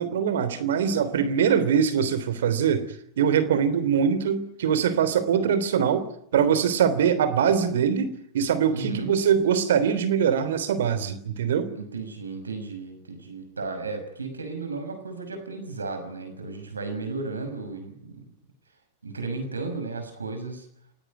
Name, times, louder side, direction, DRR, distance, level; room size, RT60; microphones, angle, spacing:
voice 1, 0.0-2.9 3.2-6.1 6.3-11.7, right 7 dB, 60° right, 13 dB, 3.2 m, -23 dB
voice 2, 8.7-9.1 11.8-18.2 19.0-20.7, right 3 dB, 75° right, 7 dB, 6.1 m, -34 dB
29.0 x 17.0 x 9.4 m, 0.71 s
figure-of-eight pair, 90°, 0 cm